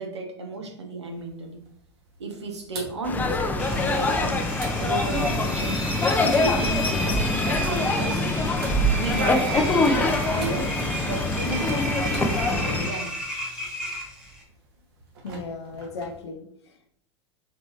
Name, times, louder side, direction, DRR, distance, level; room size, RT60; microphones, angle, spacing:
voice 1, 0.0-1.6 2.2-3.4 3.7-4.5 4.8-5.8 6.2-8.2 8.9-13.1, right 2 dB, 75° right, 3 dB, 0.9 m, -33 dB
sound 1, 1.0-16.3, right 3 dB, 60° right, 1.2 m, -47 dB
sound 2, 3.0-12.9, left 2 dB, 10° left, 0.4 m, -24 dB
Engine, 3.6-14.4, equal, 5° right, 1.0 m, -33 dB
voice 2, 15.2-16.9, left 3 dB, 65° left, 3 dB, 0.5 m, -37 dB
4.3 x 3.0 x 3.0 m, 0.68 s
figure-of-eight pair, 90°, 15 cm